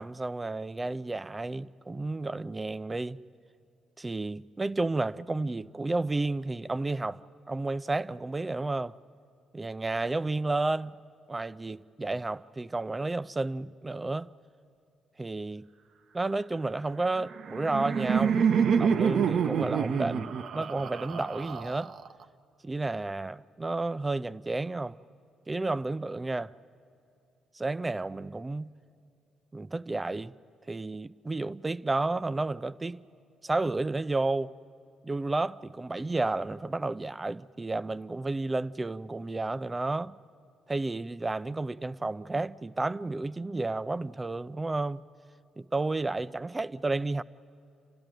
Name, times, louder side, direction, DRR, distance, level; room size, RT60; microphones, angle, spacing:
voice 1, 0.0-3.2 4.0-7.2 7.5-9.0 9.5-11.0 11.3-14.3 15.2-15.6 16.1-18.4 18.8-21.9 22.6-25.0 25.5-26.5 27.5-28.7 29.5-30.3 30.7-33.0 33.4-34.5 35.0-40.2 40.7-45.0 45.6-47.2, right 2 dB, 20° right, 0.5 m, -31 dB
Laughter, 17.2-22.2, right 7 dB, 60° right, 0.8 m, -27 dB
30.0 x 13.0 x 9.1 m
cardioid pair, 90°, 0 cm